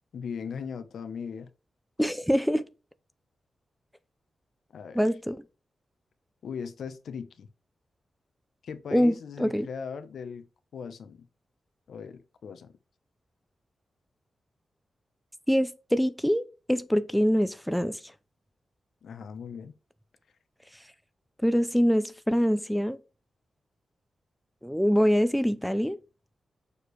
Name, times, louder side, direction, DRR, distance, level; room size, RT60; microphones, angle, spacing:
voice 1, 0.1-1.5 4.7-5.0 6.4-7.5 8.6-10.5 10.7-11.3 11.9-12.7 19.0-19.7, left 6 dB, 80° left, 1.0 m, -39 dB
voice 2, 2.0-2.7 4.9-5.4 8.9-9.7 15.5-16.4 16.7-18.0 21.4-23.0 24.6-26.0, equal, ahead, 0.6 m, -24 dB
6.7 x 4.8 x 3.3 m
cardioid pair, 95°, 0 cm